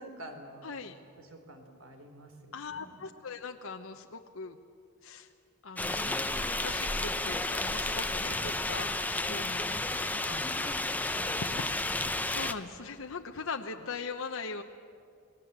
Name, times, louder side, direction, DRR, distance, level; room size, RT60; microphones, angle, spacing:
voice 1, 0.0-0.7 1.2-3.0 11.2-11.4, right 1 dB, 70° right, 6 dB, 3.5 m, -48 dB
voice 2, 0.6-1.0 2.5-4.6 5.0-5.3 5.6-6.2 6.5-10.7 11.5-11.6 12.0-14.6, left 4 dB, 70° left, 4 dB, 0.9 m, -41 dB
sound 1, 5.8-12.5, left 2 dB, 10° left, 0.8 m, -32 dB
29.0 x 20.0 x 8.1 m, 2.4 s
head